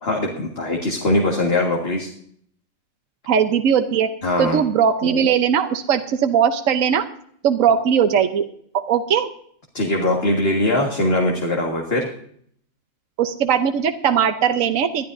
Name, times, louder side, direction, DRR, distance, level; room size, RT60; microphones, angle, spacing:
voice 1, 0.0-2.1 4.2-4.6 9.7-12.1, left 1 dB, 45° left, 0 dB, 2.1 m, -21 dB
voice 2, 3.3-4.1 4.4-7.0 7.4-8.5 8.7-9.3 13.2-15.0, right 7 dB, 70° right, 7 dB, 1.3 m, -19 dB
21.5 x 13.0 x 2.7 m, 0.63 s
omnidirectional pair, 1.5 m